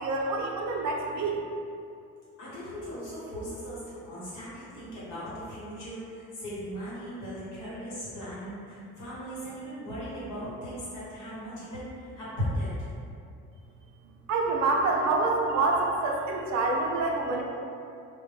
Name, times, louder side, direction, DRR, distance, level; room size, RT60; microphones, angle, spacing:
voice 1, 0.0-1.4 14.3-17.4, right 3 dB, 65° right, 0 dB, 0.5 m, -26 dB
voice 2, 2.4-12.8, equal, 85° left, -9 dB, 1.1 m, -37 dB
2.1 x 2.1 x 3.1 m, 2.5 s
cardioid pair, 90°, 30 cm